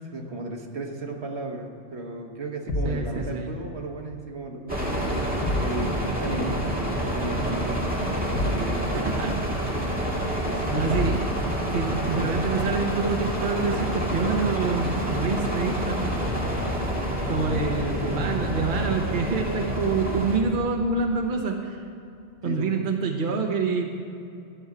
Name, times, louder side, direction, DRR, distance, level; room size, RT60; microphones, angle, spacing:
voice 1, 0.1-5.1 5.5-6.7 7.0-7.8 8.2-8.9 10.4-11.3 17.3-17.8 22.4-22.9, right 2 dB, 70° right, 2 dB, 1.5 m, -35 dB
sound 1, 2.7-3.1 5.4-5.8 8.3-8.7 10.9-11.3, left 1 dB, 75° left, 1.6 m, -27 dB
voice 2, 2.8-3.5 8.9-9.4 10.7-11.2 11.7-16.0 17.3-21.8 22.4-23.8, right 4 dB, 50° right, 2 dB, 1.1 m, -26 dB
sound 2, 4.7-20.4, equal, 10° right, 1.8 m, -28 dB
12.5 x 6.2 x 9.4 m, 2.6 s
omnidirectional pair, 1.2 m